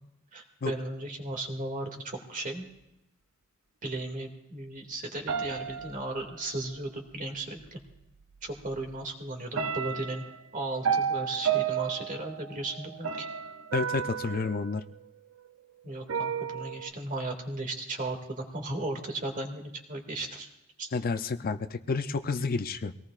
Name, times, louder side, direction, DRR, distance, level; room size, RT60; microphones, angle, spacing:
voice 1, 0.3-2.7 3.8-7.8 8.4-10.2 10.5-13.3 15.8-20.5 20.8-20.9, right 2 dB, 40° right, 3 dB, 2.2 m, -36 dB
sound 1, 5.3-6.7 7.9-8.0 8.5-9.0 9.5-15.5 16.1-16.9, right 7 dB, 70° right, 0.6 m, -32 dB
voice 2, 13.7-14.8 20.9-22.9, left 4 dB, 45° left, 10 dB, 0.5 m, -30 dB
24.0 x 18.0 x 2.4 m, 0.87 s
head